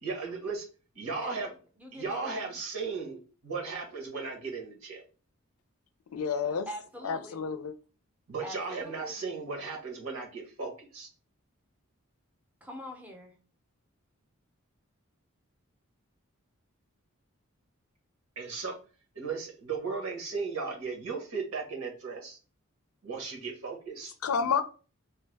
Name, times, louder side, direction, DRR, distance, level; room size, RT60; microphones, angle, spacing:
voice 1, 0.0-0.6 0.9-1.5 1.9-5.0 8.3-11.1 18.4-18.7 19.1-22.4 23.0-24.1, right 4 dB, 85° right, 1.3 m, -36 dB
voice 2, 1.1-1.5 1.8-2.5 6.5-7.5 8.4-9.2 12.6-13.4, equal, 5° right, 0.5 m, -44 dB
voice 3, 6.1-6.7 7.0-7.7 24.2-24.6, left 6 dB, 80° left, 0.4 m, -29 dB
3.3 x 2.1 x 3.3 m
head